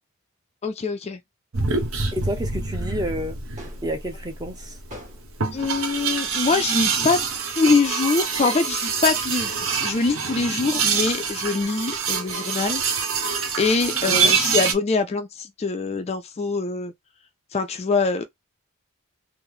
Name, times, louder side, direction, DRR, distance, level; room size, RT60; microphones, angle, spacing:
voice 1, 0.6-1.2 5.5-7.2 7.6-12.8 13.6-16.9 17.5-18.2, left 4 dB, 30° left, 0.3 m, -24 dB
sound 1, 1.5-14.7, right 5 dB, 75° right, 0.8 m, -25 dB
voice 2, 2.1-3.4 3.8-4.8 14.0-14.4, equal, 20° right, 0.6 m, -30 dB
sound 2, 3.6-4.0 4.9-5.4 6.4-6.7 7.7-8.1 9.3-9.7 10.9-11.5, equal, 35° right, 1.4 m, -44 dB
3.1 x 2.0 x 3.6 m
head